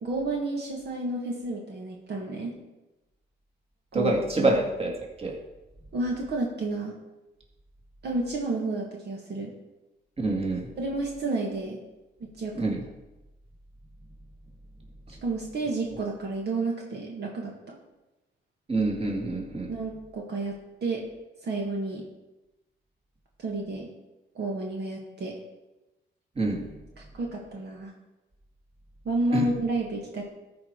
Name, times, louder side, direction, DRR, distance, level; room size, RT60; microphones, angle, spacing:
voice 1, 0.0-2.6 3.9-4.6 5.9-7.0 8.0-9.5 10.8-11.8 12.2-12.5 15.2-17.8 19.7-21.1 21.4-22.1 23.4-23.9 24.4-25.4 27.0-27.9 29.1-30.3, right 2 dB, 55° right, -1 dB, 1.8 m, -31 dB
voice 2, 3.9-4.9 5.2-5.3 10.2-10.7 12.6-12.8 18.7-19.7 26.4-26.6 29.3-29.4, right 2 dB, 30° right, 0 dB, 2.3 m, -26 dB
13.5 x 4.9 x 4.6 m, 1.0 s
cardioid pair, 90°, 20 cm